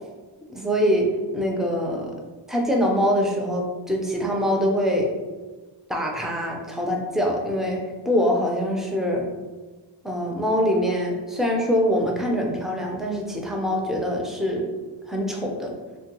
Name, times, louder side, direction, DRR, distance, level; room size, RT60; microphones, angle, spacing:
voice 1, 0.5-2.1 2.5-5.1 5.9-9.3 10.0-14.7 15.1-15.7, equal, ahead, 0 dB, 0.4 m, -24 dB
3.1 x 2.2 x 2.9 m, 1.3 s
wide cardioid pair, 95°, 43 cm